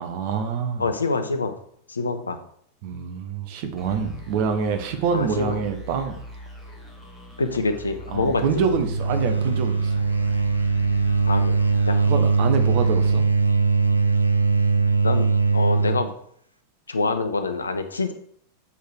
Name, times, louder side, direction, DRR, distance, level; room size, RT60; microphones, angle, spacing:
voice 1, 0.0-0.8 2.8-6.2 8.1-10.1 12.1-13.2, right 6 dB, 45° right, 7 dB, 1.0 m, -26 dB
voice 2, 0.8-1.5 1.9-2.4 5.1-5.6 7.4-8.6 11.3-11.5 11.9-12.0 15.0-16.1 16.9-18.1, left 3 dB, 75° left, 8 dB, 0.8 m, -25 dB
sound 1, 3.8-14.1, equal, 15° right, 2.1 m, -42 dB
sound 2, 8.3-16.1, right 4 dB, 85° right, 0.5 m, -21 dB
6.9 x 4.7 x 4.6 m, 0.65 s
figure-of-eight pair, 90°, 0 cm